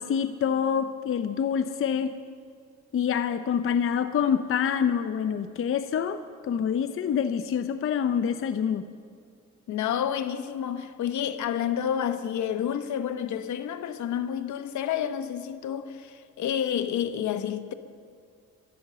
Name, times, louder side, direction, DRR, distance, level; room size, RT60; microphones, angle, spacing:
voice 1, 0.0-2.1 2.9-8.9, left 7 dB, 45° left, 0.7 m, -26 dB
voice 2, 9.7-17.7, left 9 dB, 70° left, 1.0 m, -29 dB
13.5 x 12.0 x 6.8 m
cardioid pair, 90°, 30 cm